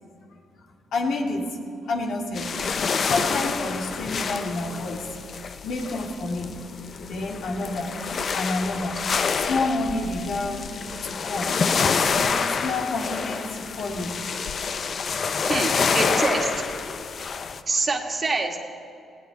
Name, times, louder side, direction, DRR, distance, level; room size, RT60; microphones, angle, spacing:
voice 1, 0.9-1.6 1.9-2.5 3.0-5.1 5.6-6.6 7.1-8.0 8.3-9.0 9.3-10.7 11.0-11.5 11.9-14.1, left 2 dB, 70° left, 1 dB, 2.2 m, -29 dB
sound 1, 2.4-17.6, left 5 dB, 50° left, 0.8 m, -27 dB
voice 2, 15.5-16.5 17.7-18.6, right 3 dB, 35° right, 3 dB, 2.0 m, -25 dB
20.0 x 17.0 x 4.1 m, 2.5 s
cardioid pair, 90°, 0 cm